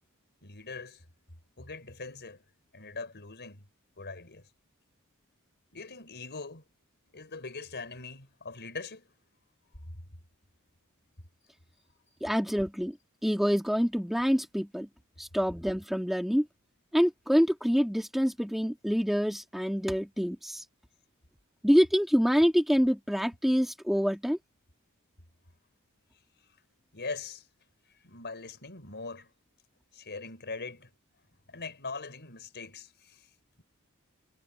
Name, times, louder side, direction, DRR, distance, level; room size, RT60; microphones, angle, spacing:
voice 1, 0.4-1.0 1.6-2.4 2.7-3.6 4.0-4.5 5.7-6.6 7.1-9.1 26.9-27.5 28.0-29.3 29.9-30.9 31.5-33.3, left 4 dB, 50° left, 5.5 m, -41 dB
voice 2, 12.2-13.0 13.2-14.9 15.2-16.5 16.9-20.6 21.6-24.4, equal, ahead, 2.3 m, -26 dB
head